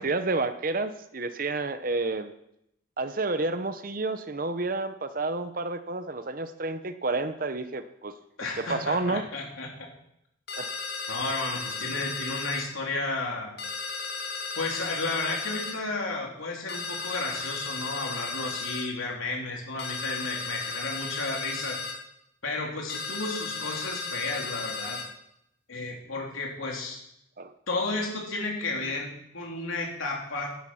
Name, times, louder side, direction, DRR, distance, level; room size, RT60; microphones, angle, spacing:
voice 1, 0.0-2.3 3.0-8.1 8.6-9.2 10.6-10.7 27.4-27.5, right 3 dB, 45° right, 10 dB, 0.8 m, -30 dB
voice 2, 8.4-9.7 11.1-13.5 14.6-21.8 22.4-25.0 25.7-27.0 27.7-30.6, left 3 dB, 90° left, -1 dB, 3.6 m, -33 dB
sound 1, 10.5-12.7 13.6-15.8 16.7-18.9 19.8-22.0 22.9-25.1, left 4 dB, 55° left, 2.2 m, -35 dB
11.5 x 11.0 x 5.8 m, 0.77 s
head